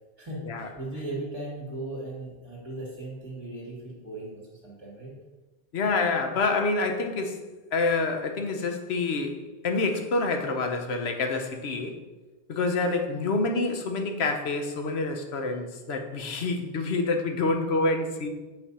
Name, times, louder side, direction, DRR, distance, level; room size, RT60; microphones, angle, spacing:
voice 1, 0.7-5.1, right 2 dB, 25° right, -6 dB, 2.4 m, -37 dB
voice 2, 5.7-7.4 7.7-12.0 12.5-18.3, left 3 dB, 80° left, 5 dB, 1.1 m, -27 dB
7.8 x 3.5 x 5.6 m, 1.2 s
omnidirectional pair, 1.1 m